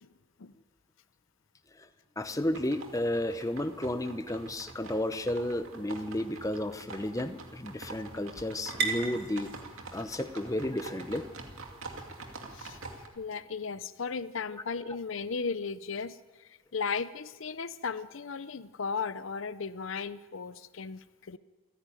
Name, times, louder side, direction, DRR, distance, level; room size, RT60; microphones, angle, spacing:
voice 1, 2.2-9.5 9.9-11.2, left 1 dB, 15° left, 9 dB, 0.8 m, -32 dB
sound 1, 2.3-13.1, right 3 dB, 75° right, 2.4 m, -46 dB
sound 2, 5.7-13.0, right 4 dB, 50° right, 2.3 m, -42 dB
voice 2, 13.2-21.4, left 5 dB, 65° left, 14 dB, 0.6 m, -36 dB
28.0 x 10.0 x 9.2 m, 1.3 s
head